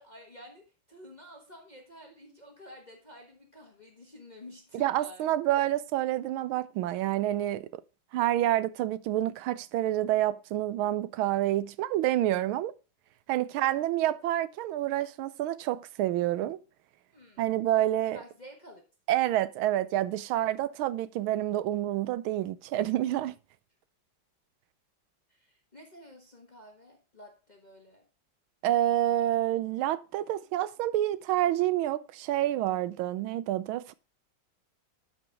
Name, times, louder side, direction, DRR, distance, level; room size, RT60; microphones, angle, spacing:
voice 1, 0.0-5.3 13.3-13.8 17.1-18.8 20.2-20.3 25.3-28.0 28.9-29.1, left 1 dB, 25° left, 1.2 m, -51 dB
voice 2, 4.7-7.8 8.1-12.7 13.3-16.6 17.4-18.2 19.1-23.3 28.6-33.9, right 13 dB, 90° right, 1.4 m, -28 dB
11.5 x 5.1 x 3.4 m
omnidirectional pair, 2.2 m